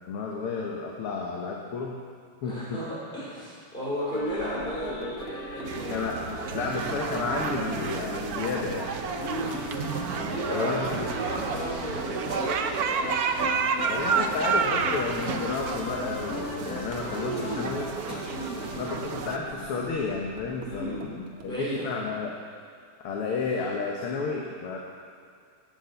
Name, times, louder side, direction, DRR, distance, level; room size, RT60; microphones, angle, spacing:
voice 1, 0.1-1.9 2.4-2.5 5.9-6.2 6.5-8.9 10.5-11.1 13.9-17.9 18.7-22.3 23.0-24.8, left 4 dB, 90° left, -1 dB, 2.1 m, -31 dB
voice 2, 2.4-6.1 9.2-10.8 11.1-13.3 18.3-18.7 20.7-21.0 21.4-21.8, equal, 25° left, -8 dB, 4.7 m, -34 dB
sound 1, 4.1-19.9, left 4 dB, 50° left, 1.2 m, -39 dB
sound 2, 4.2-21.7, right 5 dB, 85° right, 2.4 m, -46 dB
sound 3, 5.7-19.4, right 6 dB, 65° right, 0.9 m, -31 dB
13.0 x 7.8 x 8.0 m, 2.2 s
omnidirectional pair, 2.4 m